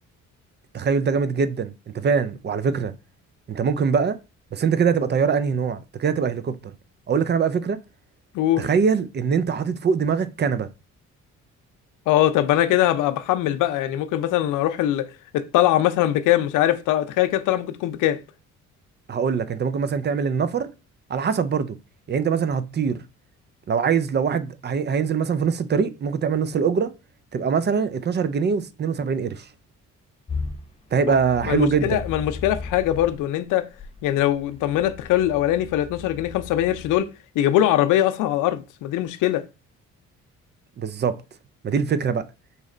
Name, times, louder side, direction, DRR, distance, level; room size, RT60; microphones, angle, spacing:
voice 1, 0.7-2.9 3.5-4.2 4.5-6.7 7.1-7.8 8.6-10.7 19.1-20.7 21.1-21.8 22.1-23.0 23.7-26.9 27.3-29.5 30.9-32.0 40.8-41.2 41.6-42.2, right 6 dB, 35° right, 0.4 m, -23 dB
voice 2, 8.3-8.6 12.1-15.1 15.3-18.2 31.5-33.7 34.0-37.1 37.4-39.4, left 13 dB, 90° left, 0.5 m, -21 dB
sound 1, 30.3-33.2 33.8-37.0, left 4 dB, 20° left, 0.7 m, -36 dB
4.0 x 3.1 x 3.7 m
cardioid pair, 90°, 30 cm